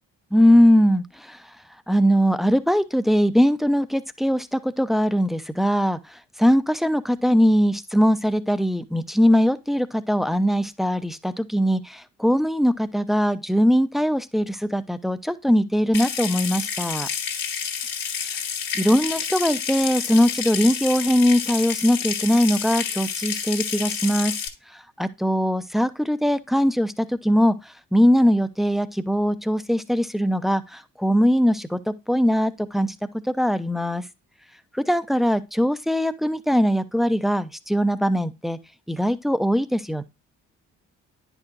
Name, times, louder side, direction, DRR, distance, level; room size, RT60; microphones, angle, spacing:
voice 1, 0.3-1.4 1.9-17.1 18.7-24.3 24.7-33.0 33.2-34.0 34.7-38.6 38.9-40.0, equal, ahead, 0.7 m, -21 dB
Water tap faucet / Sink (filling or washing) / Trickle dribble, 15.9-24.5, left 7 dB, 60° left, 1.8 m, -29 dB
10.5 x 4.8 x 2.6 m
hypercardioid pair, 45°, 38 cm